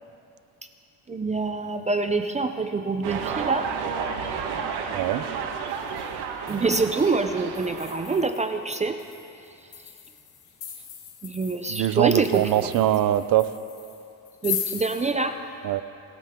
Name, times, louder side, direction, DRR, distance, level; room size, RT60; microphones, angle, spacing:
voice 1, 1.1-3.7 6.5-9.0 11.2-12.7 14.4-15.4, right 3 dB, 20° right, 7 dB, 0.5 m, -26 dB
sound 1, 3.0-8.2, right 6 dB, 85° right, 1.6 m, -31 dB
voice 2, 4.9-5.3 11.7-13.5 15.6-15.8, right 13 dB, 60° right, 14 dB, 0.6 m, -22 dB
metallic coathook, 5.8-6.1 6.5-15.1, left 9 dB, 65° left, 2.2 m, -38 dB
27.0 x 13.0 x 3.7 m, 2.6 s
cardioid pair, 135°, 39 cm